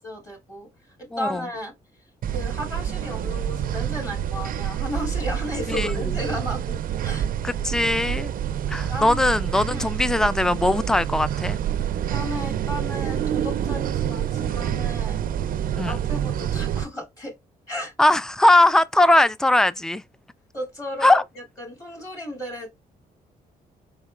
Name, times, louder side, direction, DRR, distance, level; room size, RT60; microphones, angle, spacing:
voice 1, 0.0-1.7 2.3-7.3 8.4-9.2 9.7-9.9 12.1-15.2 15.9-17.3 17.7-17.9 20.5-21.2 21.6-22.7, left 1 dB, 20° left, 2.5 m, -34 dB
voice 2, 1.1-1.4 5.7-6.1 7.4-8.3 8.7-11.6 15.8-16.0 18.0-20.0 21.0-21.2, left 1 dB, 5° left, 0.3 m, -20 dB
sound 1, 2.2-16.8, right 10 dB, 60° right, 0.5 m, -27 dB
4.1 x 3.7 x 2.4 m
cardioid pair, 100°, 16 cm